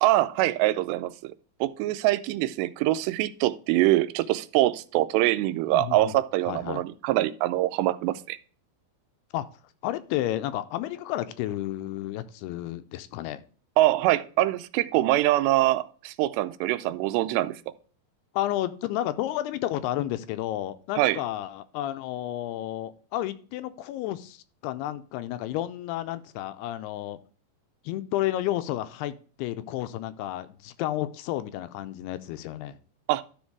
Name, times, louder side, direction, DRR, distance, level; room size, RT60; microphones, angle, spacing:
voice 1, 0.0-1.3 1.6-8.4 13.8-17.6 21.0-21.2 33.1-33.2, right 15 dB, 85° right, 2.6 m, -24 dB
voice 2, 5.7-6.1 6.5-6.8 9.3-9.5 9.8-13.4 18.3-27.2 27.9-32.8, left 13 dB, 80° left, 2.4 m, -31 dB
12.5 x 4.4 x 4.6 m
omnidirectional pair, 5.0 m